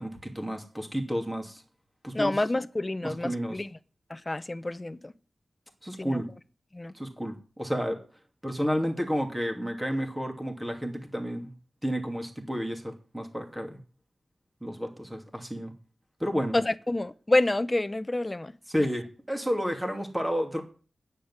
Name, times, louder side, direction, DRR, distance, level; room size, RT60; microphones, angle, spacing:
voice 1, 0.0-1.6 2.0-2.4 3.0-3.6 5.8-6.3 6.9-8.0 8.4-11.5 11.8-13.8 14.6-15.7 16.2-16.5 18.7-20.6, equal, 10° right, 2.8 m, -31 dB
voice 2, 2.1-3.7 4.1-5.1 6.0-6.2 6.7-6.9 16.5-18.5, left 2 dB, 20° left, 0.7 m, -28 dB
10.0 x 8.1 x 9.7 m
wide cardioid pair, 125°, 0 cm